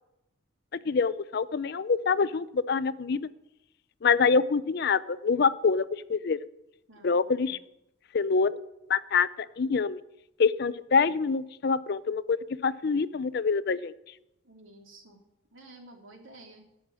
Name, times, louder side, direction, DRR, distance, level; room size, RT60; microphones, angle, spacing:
voice 1, 0.7-3.3 4.0-6.5 7.0-7.6 8.1-8.6 8.9-9.3 9.6-10.0 10.4-13.9, left 5 dB, 55° left, 16 dB, 0.4 m, -26 dB
voice 2, 6.9-7.6 14.4-15.2 15.5-16.7, right 2 dB, 80° right, 2 dB, 2.7 m, -52 dB
13.5 x 6.4 x 8.7 m, 0.88 s
head